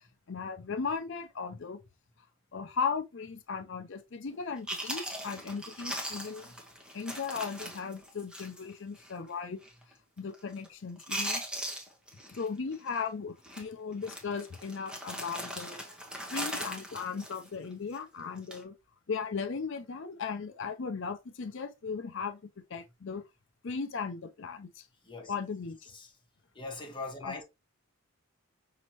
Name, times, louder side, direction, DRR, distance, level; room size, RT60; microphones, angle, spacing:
voice 1, 0.3-1.8 2.5-6.5 6.9-9.6 10.2-11.4 12.3-15.8 16.3-18.7 19.1-22.4 22.7-23.2 23.6-24.9 25.3-25.8 27.2-27.4, left 5 dB, 55° left, 0.5 m, -37 dB
Chewing mastication, 4.3-4.4 4.7-8.7 9.0-9.1 9.6-9.9 10.2-10.7 11.0-12.5 12.7-13.0 13.4-13.6 14.0-18.0 18.4-18.6, equal, 5° right, 0.8 m, -39 dB
voice 2, 26.5-27.4, left 3 dB, 20° left, 1.1 m, -40 dB
5.2 x 2.9 x 2.9 m
head